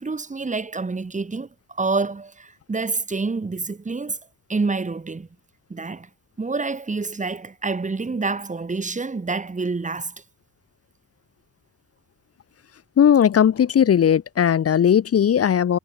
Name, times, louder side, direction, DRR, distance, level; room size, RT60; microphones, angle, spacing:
voice 1, 0.0-1.5 1.8-4.2 4.5-5.3 5.7-6.1 6.4-10.1, right 3 dB, 25° right, 4.8 m, -27 dB
voice 2, 13.0-15.8, left 9 dB, 50° left, 1.7 m, -17 dB
cardioid pair, 90°, 30 cm